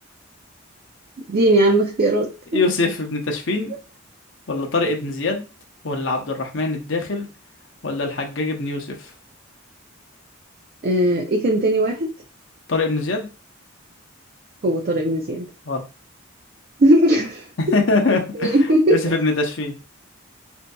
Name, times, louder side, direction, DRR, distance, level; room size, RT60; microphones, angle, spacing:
voice 1, 1.3-2.6 10.8-12.1 14.6-15.5 16.8-17.5 18.3-19.1, right 1 dB, 45° right, -1 dB, 0.4 m, -18 dB
voice 2, 2.5-3.7 4.5-5.4 5.8-7.3 7.8-9.1 12.7-13.3 15.6-15.8 17.6-19.7, left 3 dB, 60° left, 2 dB, 0.7 m, -23 dB
3.8 x 2.7 x 2.2 m, 0.33 s
head